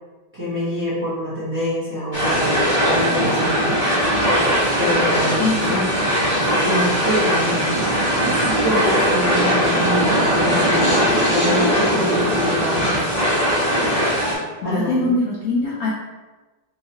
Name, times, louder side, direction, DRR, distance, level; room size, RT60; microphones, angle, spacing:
voice 1, 0.3-3.8 4.8-5.8 6.6-7.9 8.2-13.0 14.6-15.1, equal, 10° right, -11 dB, 0.6 m, -25 dB
sound 1, 2.1-14.4, equal, 30° left, 0.7 m, -19 dB
voice 2, 5.4-6.1 14.6-15.9, left 2 dB, 80° left, -4 dB, 0.8 m, -23 dB
4.4 x 2.3 x 2.8 m, 1.2 s
omnidirectional pair, 2.1 m